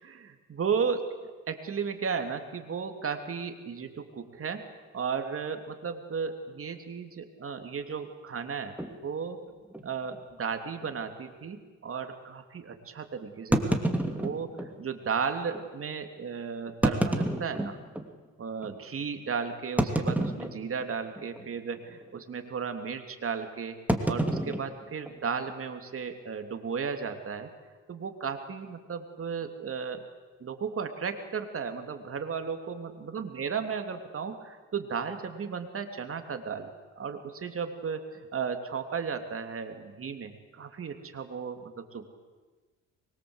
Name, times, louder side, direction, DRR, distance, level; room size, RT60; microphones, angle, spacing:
voice 1, 0.0-4.6 4.9-8.8 9.0-9.4 9.8-17.8 18.4-23.8 24.1-27.5 27.9-30.0 30.4-42.1, right 6 dB, 45° right, 6 dB, 3.1 m, -35 dB
sound 1, 8.8-9.0 9.7-9.8 10.1-10.2 10.8-10.9 13.5-14.7 15.5-15.6 16.7-18.1 18.6-18.7 19.8-20.9 21.1-21.5 21.8-22.1 23.9-25.5, right 1 dB, 5° right, 2.8 m, -29 dB
24.0 x 22.5 x 8.2 m, 1.3 s
cardioid pair, 90°, 30 cm